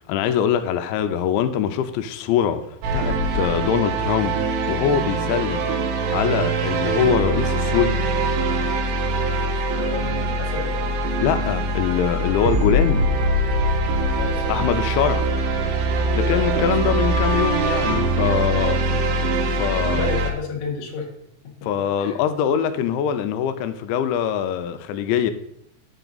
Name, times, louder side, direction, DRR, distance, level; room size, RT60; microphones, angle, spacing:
voice 1, 0.1-5.7 6.1-8.0 11.2-13.1 14.5-15.3 16.1-18.8 19.6-20.1 21.6-25.3, left 9 dB, 85° left, 2.9 m, -23 dB
sound 1, 2.8-20.3, right 2 dB, 80° right, 2.5 m, -22 dB
voice 2, 9.4-11.0 14.1-14.7 16.2-16.9 18.8-19.1 19.9-21.1 21.4-21.5 22.0-22.2, left 5 dB, 70° left, 1.7 m, -32 dB
9.9 x 4.6 x 3.9 m
omnidirectional pair, 5.2 m